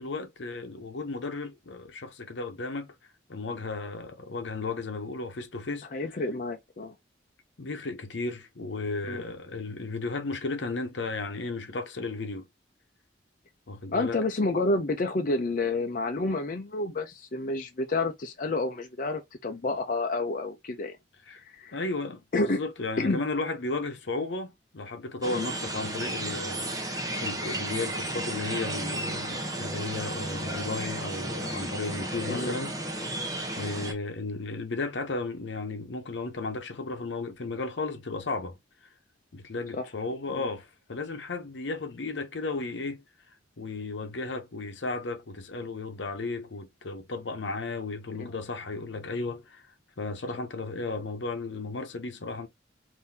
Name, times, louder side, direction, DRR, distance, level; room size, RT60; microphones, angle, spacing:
voice 1, 0.0-2.9 3.3-5.9 7.6-12.5 13.7-14.2 21.3-21.4 21.7-33.2 33.6-38.6 39.3-43.0 43.6-49.6 50.0-52.5, left 3 dB, 75° left, 0.8 m, -34 dB
voice 2, 5.9-6.9 9.1-9.2 13.9-21.0 21.4-21.8 22.3-22.6 23.0-23.2 25.3-25.5 32.3-32.6 39.7-39.8 40.3-40.5 48.1-48.3, left 2 dB, 45° left, 0.5 m, -29 dB
sound 1, 25.2-33.9, right 1 dB, 20° right, 0.8 m, -33 dB
3.7 x 2.7 x 2.7 m
head